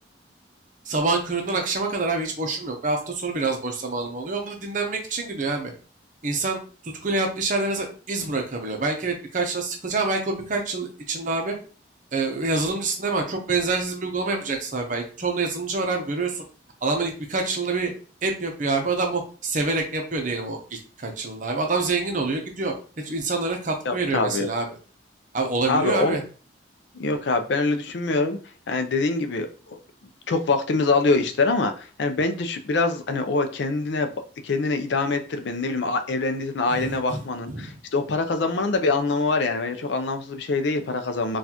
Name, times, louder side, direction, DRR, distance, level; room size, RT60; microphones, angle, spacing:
voice 1, 0.9-5.7 6.2-6.6 6.8-11.6 12.1-16.4 16.8-17.9 18.2-24.7 25.3-26.2 36.7-37.2 37.5-37.7, right 3 dB, 45° right, 3 dB, 0.7 m, -26 dB
voice 2, 23.9-24.5 25.7-26.2 27.0-28.4 28.7-29.5 30.3-34.1 34.4-41.4, left 3 dB, 65° left, 7 dB, 0.4 m, -24 dB
4.1 x 2.4 x 2.8 m, 0.38 s
head